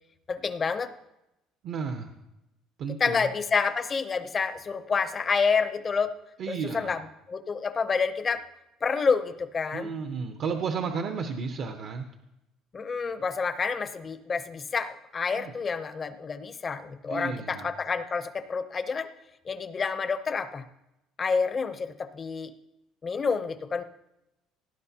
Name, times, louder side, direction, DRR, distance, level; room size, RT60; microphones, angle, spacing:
voice 1, 0.3-0.9 3.0-6.1 6.5-7.0 7.3-8.4 8.8-9.9 12.7-19.1 19.4-20.6 21.2-22.5 23.0-23.8, left 5 dB, 25° left, 10 dB, 0.6 m, -28 dB
voice 2, 1.6-2.1 2.8-3.2 6.4-7.0 9.7-12.1 15.3-15.5 17.1-17.7, right 5 dB, 50° right, 5 dB, 0.7 m, -33 dB
17.5 x 10.5 x 2.8 m, 0.90 s
cardioid pair, 155°, 0 cm